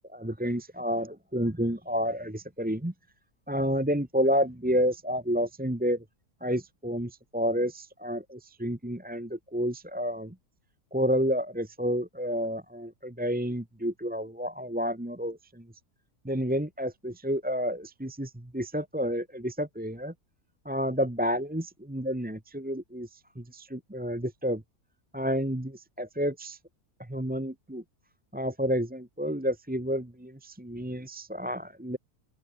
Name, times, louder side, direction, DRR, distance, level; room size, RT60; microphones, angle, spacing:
voice 1, 0.1-2.9 3.5-6.0 6.4-10.3 10.9-15.7 16.2-20.1 20.6-24.6 25.1-26.6 27.0-27.8 28.3-32.0, equal, 5° right, 1.2 m, -30 dB
open air
omnidirectional pair, 1.6 m